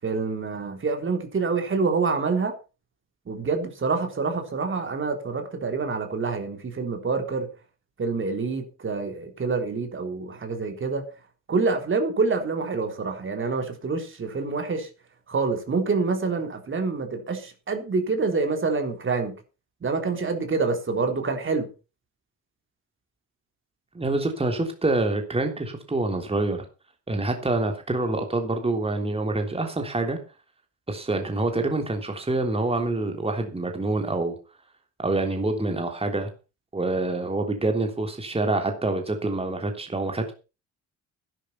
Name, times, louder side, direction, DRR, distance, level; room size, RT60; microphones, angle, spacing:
voice 1, 0.0-2.5 3.3-7.5 8.0-11.0 11.5-14.9 15.3-19.4 19.8-21.7, right 4 dB, 40° right, 3.6 m, -26 dB
voice 2, 23.9-26.6 27.1-30.2 30.9-34.4 35.0-36.3 36.7-40.3, right 2 dB, 20° right, 3.4 m, -26 dB
11.5 x 11.5 x 5.7 m
cardioid pair, 90°, 30 cm